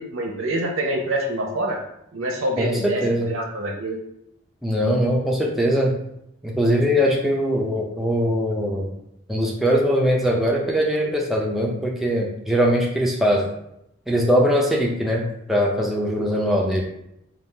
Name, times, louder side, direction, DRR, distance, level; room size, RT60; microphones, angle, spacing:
voice 1, 0.0-1.8 2.1-4.0, right 1 dB, 85° right, 0 dB, 0.7 m, -26 dB
voice 2, 2.6-3.3 4.6-6.0 6.4-8.9 9.3-13.5 14.1-16.8, equal, ahead, -2 dB, 0.6 m, -21 dB
3.6 x 2.4 x 4.3 m, 0.78 s
head